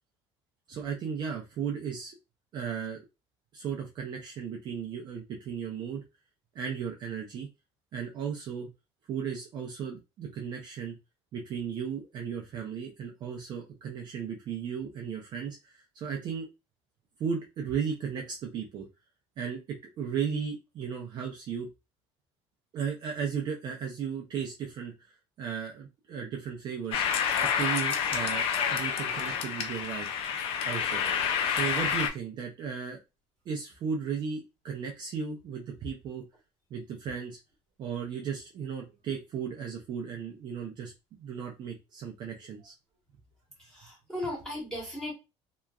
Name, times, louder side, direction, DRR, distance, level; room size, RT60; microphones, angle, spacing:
voice 1, 0.7-2.2 2.5-3.0 3.5-6.0 6.5-7.5 7.9-8.7 9.1-10.9 11.3-16.5 17.2-18.9 19.4-21.7 22.7-27.0 27.5-30.2 30.6-31.0 31.4-33.0 33.5-36.2 36.7-37.4 37.8-40.9 41.2-42.7, right 7 dB, 35° right, 1 dB, 0.4 m, -35 dB
sound 1, 26.9-32.1, left 7 dB, 50° left, 0.5 m, -29 dB
voice 2, 43.7-45.1, left 1 dB, 5° left, -4 dB, 1.2 m, -36 dB
2.9 x 2.3 x 2.3 m, 0.26 s
cardioid pair, 175°, 12 cm